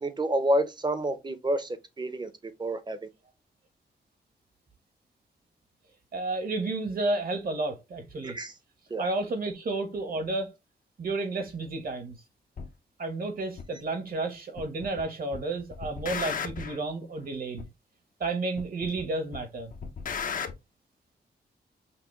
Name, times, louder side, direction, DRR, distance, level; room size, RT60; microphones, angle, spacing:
voice 1, 0.0-2.3 2.6-3.0 8.2-8.5 8.9-9.0, right 1 dB, 25° right, 0.7 m, -28 dB
voice 2, 6.1-8.4 9.0-10.5 11.0-12.2 13.0-17.7 18.2-19.7, right 2 dB, 55° right, 1.2 m, -31 dB
sound 1, 12.6-12.7 13.6-13.7 14.6-15.0 15.3-16.8 17.6-17.7 18.6-19.0 19.3-20.5, left 6 dB, 50° left, 0.6 m, -35 dB
5.9 x 2.1 x 3.1 m
cardioid pair, 95°, 18 cm